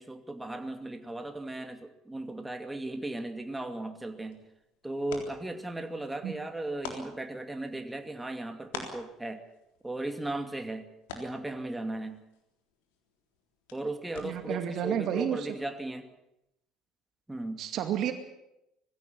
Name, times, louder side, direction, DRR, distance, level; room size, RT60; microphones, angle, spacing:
voice 1, 0.0-4.4 4.8-9.4 9.8-12.2 13.7-16.1 17.3-17.6, right 2 dB, 10° right, 6 dB, 2.6 m, -36 dB
sound 1, 3.9-14.7, left 5 dB, 75° left, 3.7 m, -49 dB
voice 2, 14.2-15.5 17.6-18.1, right 9 dB, 55° right, 7 dB, 2.3 m, -31 dB
20.5 x 16.0 x 9.0 m, 0.86 s
hypercardioid pair, 65°, 0 cm